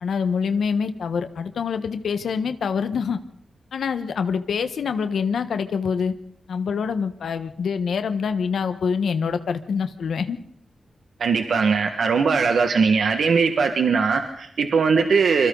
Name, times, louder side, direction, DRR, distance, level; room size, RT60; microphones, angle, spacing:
voice 1, 0.0-3.2 3.7-6.1 6.5-10.4, left 6 dB, 85° left, 9 dB, 1.3 m, -25 dB
voice 2, 11.2-15.5, right 5 dB, 80° right, 5 dB, 1.7 m, -20 dB
27.0 x 26.0 x 4.0 m, 0.69 s
wide cardioid pair, 145°, 0 cm